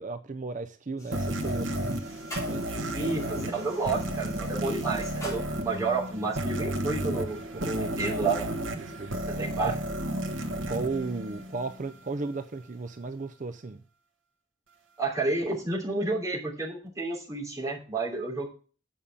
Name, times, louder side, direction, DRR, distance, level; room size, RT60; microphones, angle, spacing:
voice 1, 0.0-2.0 2.5-2.6 7.5-8.2 8.8-9.8 10.7-13.8, right 3 dB, 40° right, 8 dB, 0.5 m, -35 dB
sound 1, 1.0-10.2, equal, 15° left, 3.4 m, -48 dB
sound 2, 1.1-11.9, right 1 dB, 85° right, 1.4 m, -33 dB
voice 2, 2.9-7.4 7.7-8.5 9.3-9.7 15.0-18.5, right 3 dB, 15° right, -5 dB, 3.0 m, -30 dB
8.8 x 5.4 x 7.1 m, 0.39 s
head